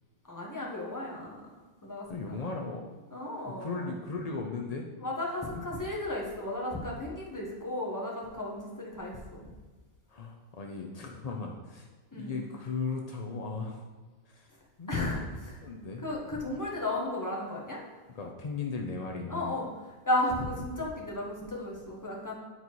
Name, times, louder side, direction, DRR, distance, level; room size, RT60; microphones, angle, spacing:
voice 1, 0.3-1.5 1.8-2.4 3.1-3.8 5.0-9.4 12.1-12.4 14.9-15.2 16.0-17.8 19.3-19.7 20.0-22.3, left 1 dB, 15° left, -3 dB, 1.3 m, -34 dB
voice 2, 2.1-2.9 3.5-4.9 5.4-5.7 10.1-11.9 12.1-13.9 14.3-14.5 14.8-15.2 15.6-16.0 18.1-19.5, left 4 dB, 60° left, 1 dB, 0.4 m, -37 dB
9.1 x 4.1 x 4.6 m, 1.3 s
omnidirectional pair, 1.5 m